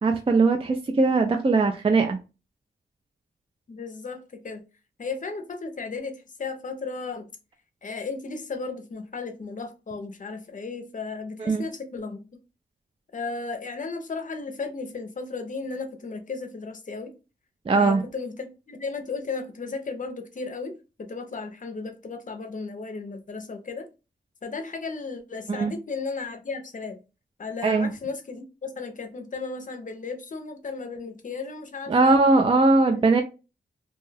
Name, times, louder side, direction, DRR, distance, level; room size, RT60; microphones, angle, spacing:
voice 1, 0.0-2.2 11.4-11.6 17.7-18.0 25.5-25.7 27.6-27.9 31.9-33.2, right 3 dB, 30° right, 0.4 m, -20 dB
voice 2, 3.7-4.6 5.0-7.3 7.8-12.4 13.1-17.1 17.7-23.9 24.4-27.0 27.4-32.2 32.9-33.0, left 4 dB, 45° left, 0.6 m, -35 dB
2.6 x 2.3 x 3.2 m
wide cardioid pair, 110°, 18 cm